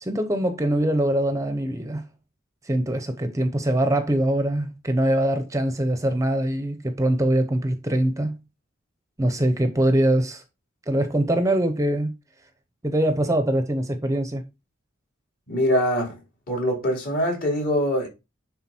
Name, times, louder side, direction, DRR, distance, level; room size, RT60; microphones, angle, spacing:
voice 1, 0.0-2.0 2.6-8.4 9.2-10.4 10.9-12.1 12.8-14.4, right 1 dB, 15° right, 0.8 m, -23 dB
voice 2, 15.5-16.2 16.5-18.1, equal, 50° left, 4.0 m, -23 dB
10.0 x 3.9 x 4.4 m
head